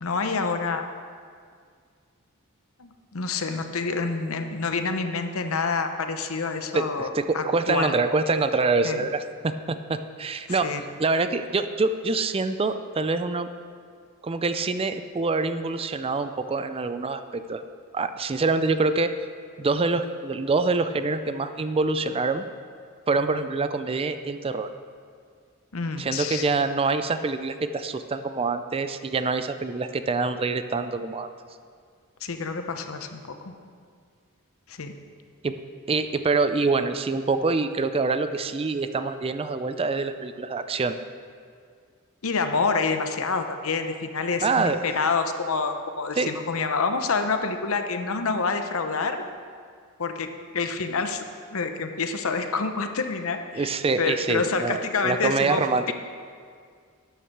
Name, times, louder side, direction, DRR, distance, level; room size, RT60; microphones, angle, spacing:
voice 1, 0.0-0.8 2.8-8.0 8.8-9.1 10.5-10.8 25.7-26.5 32.2-33.5 34.7-34.9 42.2-49.2 50.0-51.2 51.5-55.6 55.9-56.0, left 4 dB, 70° left, 7 dB, 0.8 m, -27 dB
voice 2, 6.7-10.7 11.0-13.5 14.2-17.6 17.9-19.1 19.6-22.4 23.1-24.7 26.0-31.3 35.4-35.5 35.9-40.9 44.4-44.8 46.2-46.3 53.5-55.8, right 3 dB, 25° right, 10 dB, 0.4 m, -25 dB
12.5 x 9.2 x 4.7 m, 2.1 s
head